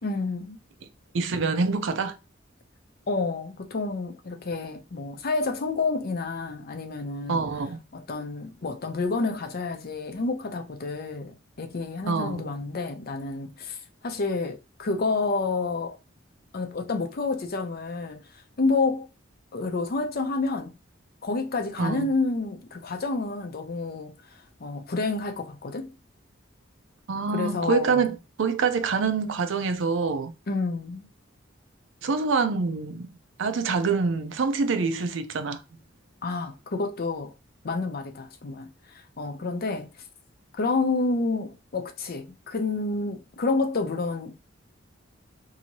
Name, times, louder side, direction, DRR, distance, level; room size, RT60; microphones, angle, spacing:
voice 1, 0.0-0.6 3.1-7.4 7.9-13.8 14.0-16.0 16.5-18.2 18.6-19.1 19.5-20.8 21.2-24.2 24.6-25.9 27.3-28.0 30.5-31.1 36.2-37.3 37.6-39.9 40.5-44.4, left 3 dB, 50° left, 0.6 m, -29 dB
voice 2, 1.1-2.1 7.3-7.8 12.1-12.5 21.8-22.1 27.1-30.3 32.0-33.1 33.4-35.6, right 4 dB, 65° right, 0.5 m, -26 dB
2.8 x 2.7 x 2.8 m
head